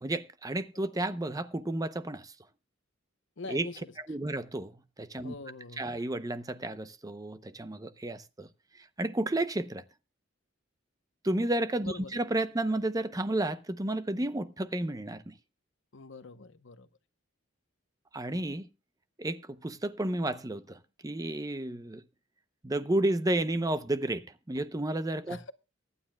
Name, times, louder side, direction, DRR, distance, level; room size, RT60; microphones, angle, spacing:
voice 1, 0.0-2.3 3.5-3.7 4.0-5.3 5.8-8.5 8.8-9.8 11.2-15.3 18.1-18.7 19.2-22.0 22.6-25.4, right 1 dB, 20° right, 0.6 m, -32 dB
voice 2, 3.4-3.8 4.3-4.4 5.2-6.0 11.9-12.2 15.9-16.9 25.3-25.5, left 3 dB, 65° left, 0.8 m, -44 dB
23.5 x 9.7 x 2.2 m
head